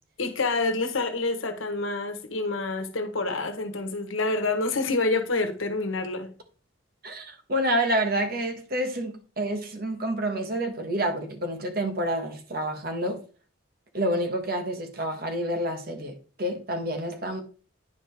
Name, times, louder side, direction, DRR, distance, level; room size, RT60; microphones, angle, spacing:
voice 1, 0.2-6.3, left 3 dB, 85° left, 1.1 m, -27 dB
voice 2, 7.0-13.2 13.9-17.4, right 1 dB, 50° right, 1.2 m, -28 dB
9.7 x 4.9 x 3.4 m
head